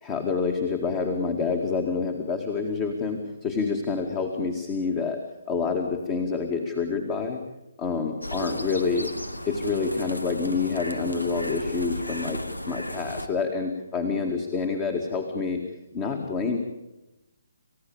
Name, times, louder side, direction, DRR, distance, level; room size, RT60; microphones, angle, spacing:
voice 1, 0.0-5.2 5.5-7.4 7.8-9.1 9.5-15.6 15.9-16.6, left 5 dB, 20° left, 5 dB, 2.1 m, -27 dB
sound 1, 8.2-13.3, equal, 80° left, 1.8 m, -34 dB
29.0 x 15.5 x 8.8 m, 0.99 s
figure-of-eight pair, 140°, 0 cm